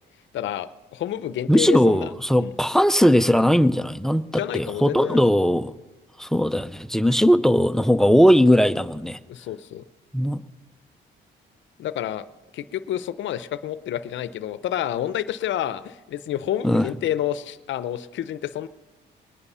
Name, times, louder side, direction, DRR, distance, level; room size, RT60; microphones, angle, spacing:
voice 1, 0.3-2.1 2.4-2.5 4.3-5.2 9.3-9.8 11.8-12.3 12.5-18.7, left 11 dB, 70° left, 15 dB, 0.6 m, -29 dB
voice 2, 1.5-5.7 6.2-9.2 10.1-10.4 16.6-16.9, equal, ahead, 13 dB, 0.5 m, -19 dB
20.5 x 9.8 x 5.6 m, 1.1 s
cardioid pair, 90°, 20 cm